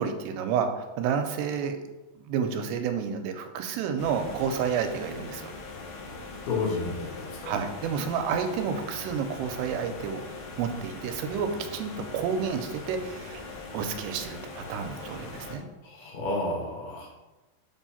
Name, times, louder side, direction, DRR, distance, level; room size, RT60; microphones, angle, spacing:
voice 1, 0.0-1.8 2.2-5.5 7.4-10.3 10.6-15.6, right 6 dB, 90° right, 6 dB, 2.7 m, -30 dB
sound 1, 4.0-15.6, left 3 dB, 90° left, 1.6 m, -41 dB
voice 2, 6.5-7.5 15.8-17.1, left 3 dB, 70° left, -2 dB, 3.2 m, -31 dB
7.3 x 2.7 x 5.6 m, 1.1 s
omnidirectional pair, 4.8 m